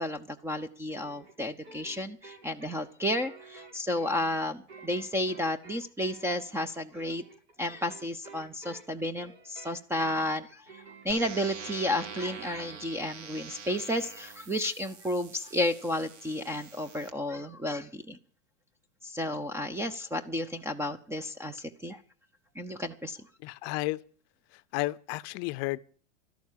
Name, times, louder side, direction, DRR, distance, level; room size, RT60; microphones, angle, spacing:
voice 1, 0.0-7.2 7.6-10.6 11.0-18.2 19.0-22.0 22.6-23.2, left 1 dB, 5° right, 0.6 m, -32 dB
sound 1, 0.9-12.9, right 4 dB, 65° right, 6.1 m, -51 dB
sound 2, 11.1-17.1, right 5 dB, 80° right, 1.8 m, -45 dB
voice 2, 23.4-24.0 24.7-25.8, left 20 dB, 40° left, 0.7 m, -32 dB
13.0 x 11.5 x 7.4 m
hypercardioid pair, 120°, 36 cm